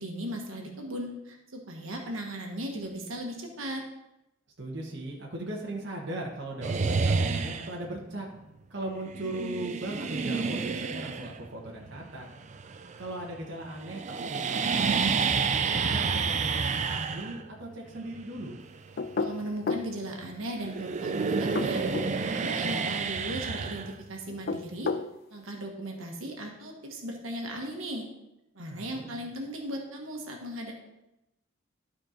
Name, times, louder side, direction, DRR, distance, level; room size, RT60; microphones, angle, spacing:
voice 1, 0.0-3.8 19.2-21.8 22.3-25.0 25.3-28.0 28.5-30.7, right 1 dB, 80° right, 1 dB, 1.4 m, -37 dB
voice 2, 4.6-8.3 8.7-12.3 13.0-15.3 15.6-18.6 28.6-29.1, right 1 dB, 55° right, -2 dB, 1.3 m, -38 dB
sound 1, 6.6-7.9 9.1-13.4 13.6-20.3 20.6-24.4, right 5 dB, 35° right, 0.4 m, -30 dB
sound 2, 19.0-19.9 21.4-22.1 24.3-25.1, left 4 dB, 50° left, 0.4 m, -31 dB
12.0 x 4.4 x 4.4 m, 0.91 s
head